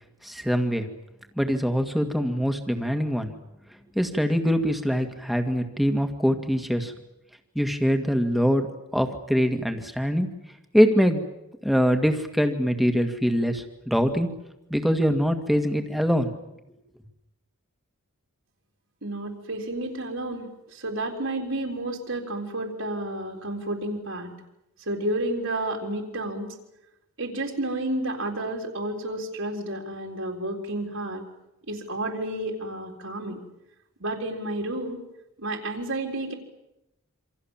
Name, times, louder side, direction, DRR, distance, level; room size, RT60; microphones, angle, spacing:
voice 1, 0.2-0.9 1.4-3.3 4.0-6.9 7.6-8.7 8.9-10.3 10.7-11.2 11.6-14.3 14.7-16.3, equal, ahead, 5 dB, 2.1 m, -23 dB
voice 2, 19.0-24.3 24.8-26.5 27.2-31.2 31.7-33.4 34.0-35.0 35.4-36.3, right 1 dB, 65° right, 0 dB, 4.0 m, -31 dB
28.0 x 26.0 x 7.5 m, 0.91 s
head